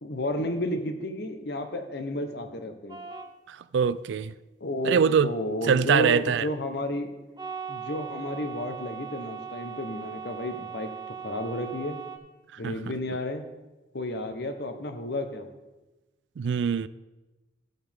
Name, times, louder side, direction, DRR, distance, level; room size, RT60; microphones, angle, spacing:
voice 1, 0.0-3.0 4.6-7.1 7.7-12.0 12.6-13.5 13.9-15.5, left 1 dB, 60° left, 1.0 m, -32 dB
sound 1, 2.9-3.3 7.4-12.2, right 7 dB, 20° right, 0.8 m, -39 dB
voice 2, 3.5-4.3 4.8-5.3 5.7-6.5 12.6-12.8 16.4-16.9, right 7 dB, 70° right, 0.3 m, -23 dB
13.5 x 7.8 x 3.6 m
head